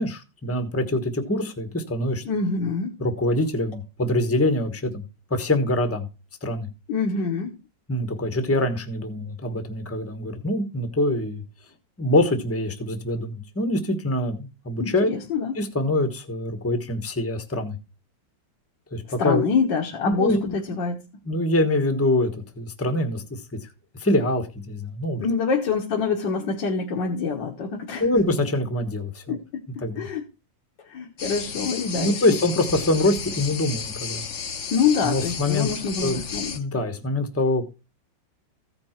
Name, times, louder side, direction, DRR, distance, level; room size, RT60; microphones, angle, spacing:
voice 1, 0.0-2.2 3.0-5.0 5.3-6.1 6.4-6.7 7.9-11.4 12.0-15.1 15.5-17.8 18.9-19.4 20.1-20.6 21.3-23.7 24.0-25.3 28.0-29.4 29.8-30.1 32.0-34.3 35.0-35.7 36.0-36.2 36.5-37.6, left 1 dB, 10° left, 8 dB, 1.0 m, -24 dB
voice 2, 2.3-2.9 6.9-7.5 14.8-15.6 19.2-21.0 25.2-28.1 29.3-29.4 29.8-30.2 30.8-32.2 34.7-36.5, left 5 dB, 70° left, 0 dB, 2.0 m, -25 dB
sound 1, 31.2-36.6, left 6 dB, 45° left, 1.1 m, -33 dB
15.0 x 5.3 x 4.4 m, 0.29 s
omnidirectional pair, 2.0 m